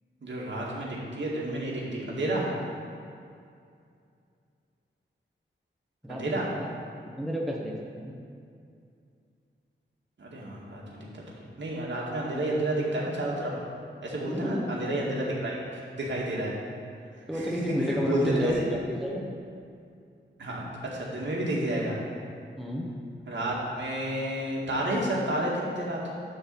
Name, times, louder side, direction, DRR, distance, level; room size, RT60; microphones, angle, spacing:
voice 1, 0.2-2.5 6.1-6.5 10.2-11.0 11.4-13.5 14.0-16.5 17.3-17.5 17.9-18.5 20.4-22.0 23.3-26.1, right 1 dB, 65° right, -4 dB, 2.0 m, -30 dB
voice 2, 6.0-6.8 7.2-8.1 14.3-14.7 17.3-19.2 22.6-22.9, equal, ahead, -2 dB, 0.9 m, -31 dB
11.0 x 3.9 x 7.0 m, 2.4 s
wide cardioid pair, 140°, 20 cm